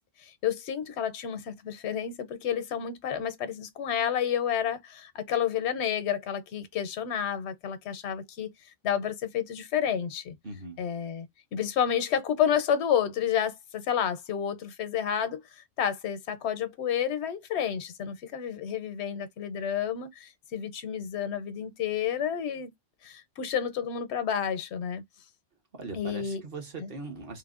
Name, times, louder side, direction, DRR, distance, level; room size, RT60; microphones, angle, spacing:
voice 1, 0.2-8.5 8.8-10.4 10.8-11.3 11.5-15.4 15.8-22.7 23.0-25.0 25.9-26.4 26.8-26.9, left 8 dB, 85° left, 0.9 m, -30 dB
voice 2, 10.4-10.8 25.7-27.4, right 3 dB, 60° right, 1.1 m, -40 dB
3.1 x 2.0 x 2.3 m
omnidirectional pair, 1.1 m